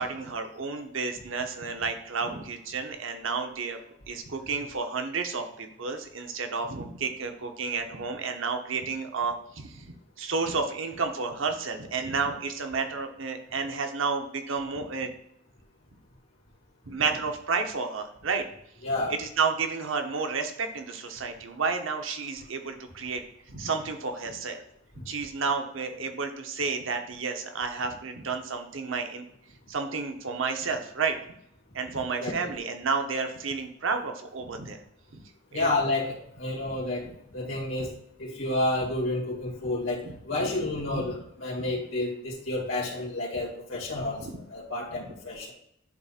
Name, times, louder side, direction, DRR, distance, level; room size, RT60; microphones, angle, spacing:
voice 1, 0.0-3.8 4.1-15.1 16.9-18.4 19.1-24.6 25.1-29.3 29.7-31.2 31.7-34.8 35.1-35.2 35.5-35.7 40.0-40.5 40.9-41.0 44.2-44.4, right 4 dB, 70° right, 5 dB, 0.8 m, -31 dB
voice 2, 18.8-19.1 32.2-32.6 35.5-37.0 37.3-37.9 38.2-45.5, left 2 dB, 80° left, -4 dB, 2.2 m, -30 dB
10.5 x 4.2 x 2.5 m, 0.74 s
head